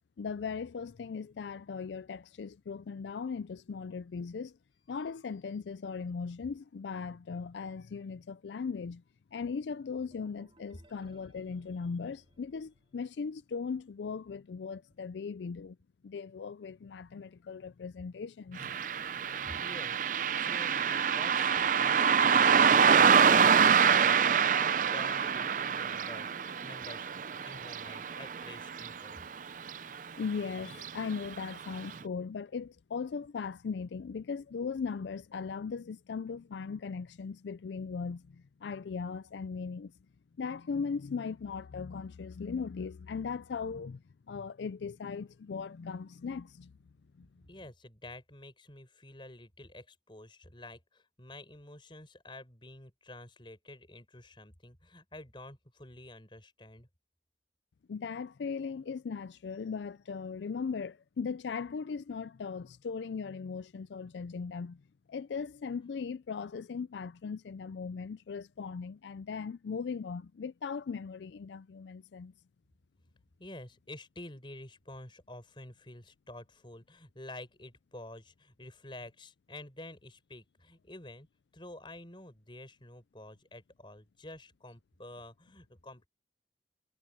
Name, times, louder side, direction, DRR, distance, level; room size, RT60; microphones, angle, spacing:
voice 1, 0.2-4.6 4.9-9.0 9.3-15.8 16.0-18.8 19.1-19.6 30.2-39.9 40.4-44.0 44.3-46.7 47.2-47.3 57.9-64.8 65.1-72.3, left 5 dB, 80° left, 0.4 m, -38 dB
sound 1, 10.0-13.7, right 1 dB, 30° right, 5.8 m, -65 dB
Car passing by, 18.6-29.4 29.7-29.8 30.7-30.9 31.4-31.5 32.0-32.1, right 7 dB, 45° right, 0.5 m, -26 dB
voice 2, 19.4-29.2 47.5-56.9 73.4-81.3 81.5-86.1, left 1 dB, 30° left, 5.4 m, -49 dB
head